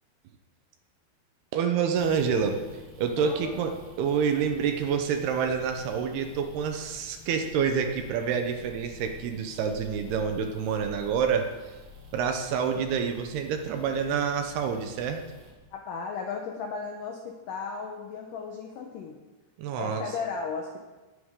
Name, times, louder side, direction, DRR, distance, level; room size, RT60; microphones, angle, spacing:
voice 1, 1.5-2.6 3.0-11.5 12.1-15.2 19.6-20.0, right 6 dB, 75° right, 5 dB, 2.7 m, -27 dB
sound 1, 1.9-15.5, left 1 dB, 90° right, 6.6 m, -50 dB
voice 2, 3.2-3.7 15.7-19.2 19.7-20.8, left 5 dB, 80° left, 2 dB, 1.9 m, -35 dB
19.5 x 9.5 x 3.8 m, 1.2 s
omnidirectional pair, 5.1 m